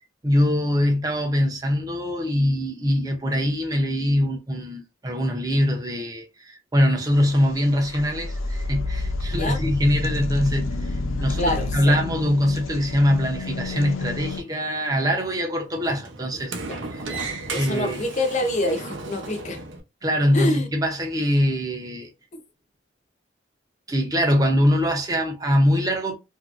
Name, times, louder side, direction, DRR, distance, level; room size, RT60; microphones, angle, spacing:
voice 1, 0.2-16.6 16.9-17.2 17.5-18.0 20.0-22.1 23.9-26.2, equal, 20° right, 0.6 m, -23 dB
sound 1, 7.1-14.4, left 2 dB, 90° left, 0.5 m, -29 dB
voice 2, 11.4-12.0 16.7-16.8 17.1-19.6 20.3-20.7 22.3-22.4, left 1 dB, 35° left, 0.5 m, -26 dB
Sliding door, 12.8-19.8, right 3 dB, 70° right, 0.6 m, -37 dB
2.9 x 2.6 x 2.4 m
head